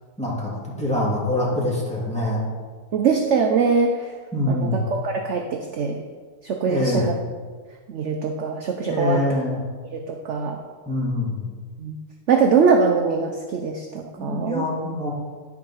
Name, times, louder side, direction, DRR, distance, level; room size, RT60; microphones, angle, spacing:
voice 1, 0.2-2.4 4.3-4.8 6.7-7.1 8.9-9.6 10.9-11.4 14.2-15.1, left 1 dB, 5° left, -6 dB, 2.2 m, -24 dB
voice 2, 2.9-4.1 4.5-6.0 6.4-7.1 7.9-9.2 9.9-10.6 11.8-12.0 12.3-14.6, right 5 dB, 60° right, 3 dB, 0.8 m, -22 dB
10.5 x 4.7 x 5.5 m, 1.5 s
omnidirectional pair, 1.7 m